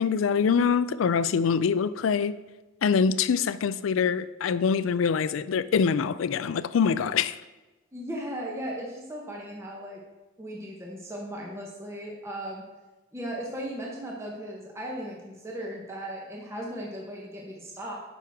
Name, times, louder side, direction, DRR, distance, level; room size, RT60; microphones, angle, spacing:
voice 1, 0.0-2.4 2.8-7.4, left 6 dB, 90° left, 0.4 m, -24 dB
voice 2, 7.9-10.0 10.4-12.6 13.1-18.0, equal, 15° right, 1.0 m, -37 dB
10.0 x 6.2 x 3.6 m
head